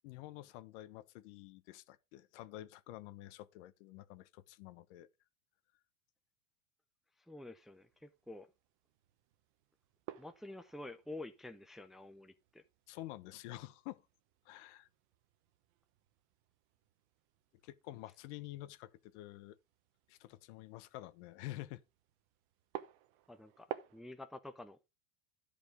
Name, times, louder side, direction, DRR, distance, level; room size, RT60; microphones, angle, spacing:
voice 1, 0.0-5.1 12.9-14.0 14.4-14.9 17.6-19.6 20.1-21.8, left 16 dB, 65° left, 1.1 m, -49 dB
voice 2, 7.3-8.5 10.2-12.6 23.3-23.7 23.9-24.9, left 2 dB, ahead, 0.6 m, -49 dB
sound 1, 7.6-24.0, right 13 dB, 65° right, 1.2 m, -54 dB
11.0 x 5.3 x 5.0 m
supercardioid pair, 115°, 37 cm